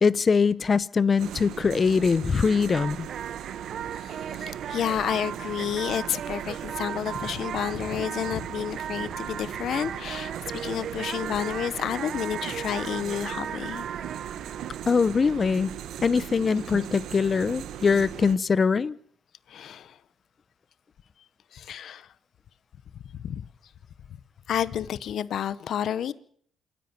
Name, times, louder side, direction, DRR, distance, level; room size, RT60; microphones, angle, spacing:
voice 1, 0.0-3.1 14.9-15.7 16.0-18.9, left 5 dB, 35° left, 0.9 m, -22 dB
sound 1, 1.2-18.4, right 10 dB, 80° right, 1.4 m, -39 dB
sound 2, 2.3-15.8, right 8 dB, 60° right, 0.8 m, -37 dB
voice 2, 4.0-13.9 19.5-20.0 21.5-22.1 23.1-23.4 24.5-26.1, left 9 dB, 65° left, 0.8 m, -30 dB
27.5 x 11.0 x 9.1 m
cardioid pair, 90°, 0 cm